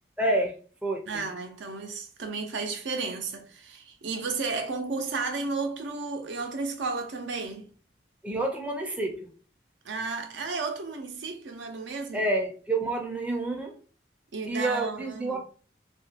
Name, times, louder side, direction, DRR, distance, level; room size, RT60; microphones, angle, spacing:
voice 1, 0.2-0.6 0.8-1.2 8.2-9.3 12.1-13.8 14.4-15.4, right 2 dB, 5° right, 0.4 m, -28 dB
voice 2, 1.1-7.7 9.8-12.3 14.3-15.4, right 4 dB, 85° right, 0.6 m, -33 dB
2.9 x 2.4 x 2.7 m
head